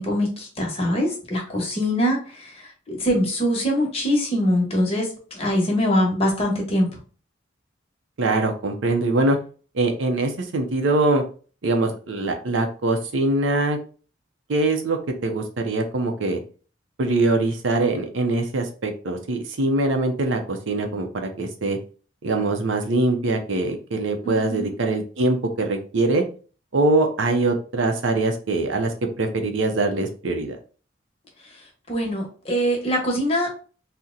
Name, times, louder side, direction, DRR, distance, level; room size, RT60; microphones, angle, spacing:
voice 1, 0.0-6.9 24.2-24.7 31.9-33.5, equal, 30° left, 0 dB, 0.9 m, -23 dB
voice 2, 8.2-9.4 9.7-11.2 11.6-13.8 14.5-16.4 17.0-21.1 21.4-21.8 22.2-26.2 26.7-30.6, right 2 dB, 85° right, 5 dB, 0.6 m, -23 dB
2.8 x 2.1 x 3.7 m, 0.39 s
head